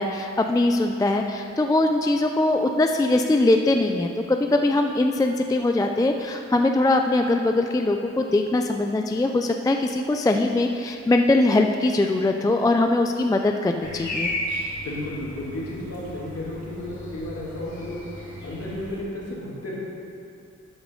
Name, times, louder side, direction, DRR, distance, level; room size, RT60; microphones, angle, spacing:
voice 1, 0.0-14.3, left 2 dB, 15° left, 4 dB, 0.3 m, -21 dB
sound 1, 13.8-19.0, left 1 dB, 75° left, 2.5 m, -34 dB
voice 2, 14.8-18.0 18.4-19.7, left 1 dB, 55° left, -5 dB, 2.3 m, -33 dB
11.5 x 8.3 x 3.7 m, 2.5 s
wide cardioid pair, 150°, 30 cm